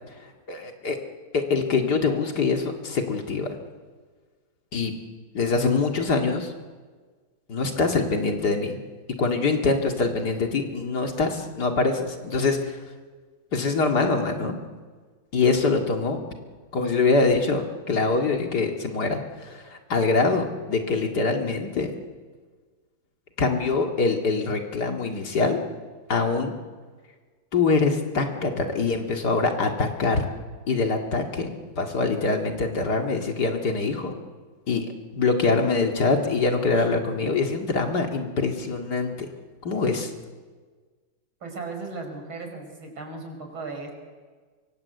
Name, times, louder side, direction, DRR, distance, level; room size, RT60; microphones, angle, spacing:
voice 1, 0.5-1.0 1.3-3.5 4.7-4.9 5.3-6.5 7.5-8.8 9.2-12.8 13.5-14.6 15.3-16.2 16.7-21.9 23.4-25.6 26.1-26.5 27.5-30.3 30.7-31.5 31.8-34.1 34.7-34.9 35.1-39.3 39.6-40.1, left 4 dB, 55° left, 3 dB, 2.6 m, -24 dB
voice 2, 41.4-43.9, right 3 dB, 85° right, 3 dB, 5.7 m, -36 dB
24.5 x 24.0 x 8.1 m, 1.5 s
omnidirectional pair, 2.2 m